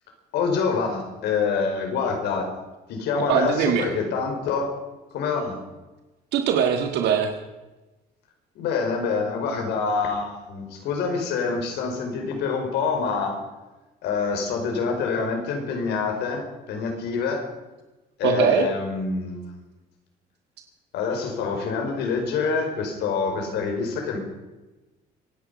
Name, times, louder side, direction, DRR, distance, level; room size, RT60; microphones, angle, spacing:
voice 1, 0.3-2.5 2.9-4.7 5.1-5.6 8.5-13.4 14.0-17.5 18.2-19.4 20.9-24.2, left 5 dB, 80° left, 3 dB, 4.8 m, -26 dB
voice 2, 3.2-3.9 6.3-7.3 18.2-18.7, right 8 dB, 85° right, 5 dB, 1.7 m, -21 dB
25.0 x 10.5 x 5.4 m, 1.1 s
cardioid pair, 110°, 17 cm